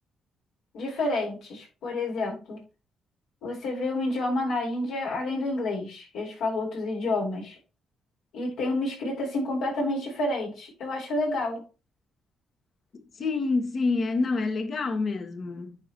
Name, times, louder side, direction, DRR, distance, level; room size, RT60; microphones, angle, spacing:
voice 1, 0.7-2.6 3.4-7.6 8.3-11.6, left 2 dB, 80° left, 4.5 m, -29 dB
voice 2, 12.9-15.8, left 3 dB, 50° left, 1.5 m, -27 dB
9.7 x 5.1 x 3.0 m
supercardioid pair, 70°, 0 cm